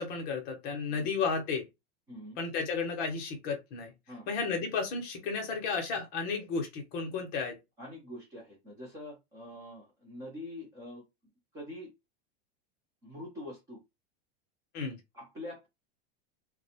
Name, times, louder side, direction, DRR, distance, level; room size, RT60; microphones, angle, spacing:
voice 1, 0.0-1.7 2.4-3.9 4.3-7.6 14.7-15.0, left 5 dB, 30° left, 0.6 m, -33 dB
voice 2, 2.1-2.4 4.1-4.4 7.8-11.1 11.5-11.9 13.0-13.8 15.1-15.7, left 1 dB, 10° right, 0.3 m, -45 dB
2.4 x 2.0 x 2.7 m
supercardioid pair, 170°, 30 cm